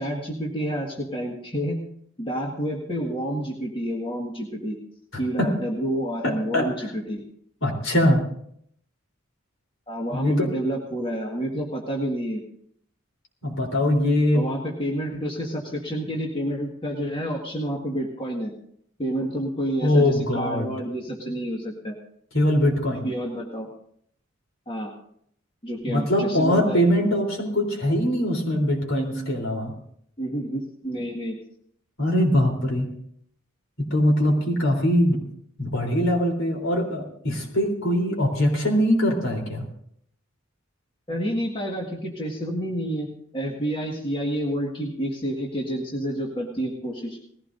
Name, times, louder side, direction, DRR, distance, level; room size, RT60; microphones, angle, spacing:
voice 1, 0.0-1.8 2.2-4.8 5.1-7.2 9.9-12.4 14.3-18.5 19.0-22.0 22.9-23.7 24.7-24.9 25.6-26.8 30.2-31.4 41.1-43.1 43.3-47.2, equal, 25° left, -1 dB, 1.8 m, -29 dB
voice 2, 6.2-6.7 7.6-8.2 10.1-10.5 13.4-14.5 19.8-20.7 22.3-23.1 25.9-29.7 32.0-32.9 33.8-35.2 35.6-39.6, left 1 dB, 70° left, 1 dB, 3.7 m, -22 dB
19.5 x 15.5 x 2.7 m, 0.68 s
head